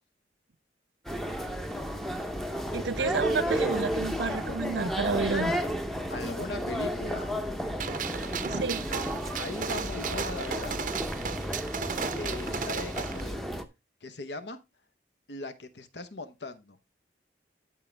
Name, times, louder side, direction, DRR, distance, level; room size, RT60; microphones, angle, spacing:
sound 1, 1.0-13.6, equal, ahead, 0.6 m, -33 dB
voice 1, 2.7-5.6 8.4-8.8, right 4 dB, 80° right, 0.7 m, -30 dB
voice 2, 6.1-7.3 9.4-10.8 12.1-13.4 14.0-14.6 15.3-16.8, left 2 dB, 75° left, 1.0 m, -39 dB
Gunshot gunfire, 7.8-13.2, right 6 dB, 45° right, 0.6 m, -35 dB
12.5 x 4.8 x 3.3 m
head